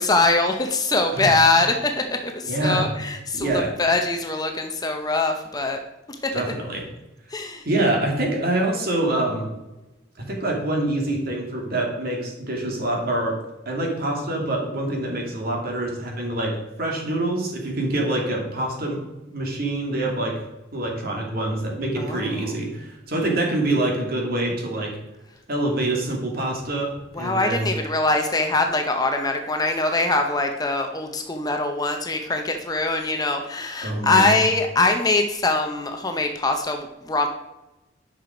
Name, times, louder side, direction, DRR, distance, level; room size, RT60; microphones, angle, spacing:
voice 1, 0.0-5.8 6.2-6.3 7.3-7.7 22.0-22.5 27.1-37.3, left 2 dB, 20° left, 5 dB, 0.7 m, -23 dB
voice 2, 2.5-2.9 3.3-3.8 6.3-6.8 7.6-9.5 10.2-13.4 13.7-19.0 19.3-20.4 20.7-25.0 25.5-27.7 33.8-34.3, right 1 dB, 50° right, 0 dB, 2.4 m, -25 dB
9.9 x 5.9 x 5.1 m, 1.0 s
head